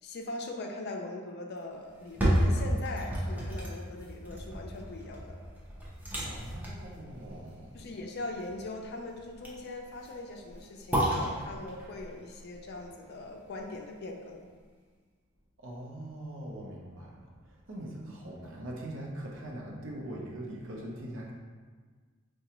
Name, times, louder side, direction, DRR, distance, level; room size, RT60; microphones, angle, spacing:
voice 1, 0.0-5.4 7.7-14.4, left 2 dB, 50° left, 2 dB, 0.4 m, -41 dB
sound 1, 1.9-14.0 14.4-14.5, equal, 10° right, 0.6 m, -33 dB
voice 2, 6.2-7.8 15.6-21.3, right 1 dB, 60° right, -2 dB, 0.7 m, -42 dB
4.8 x 2.2 x 2.9 m, 1.5 s
head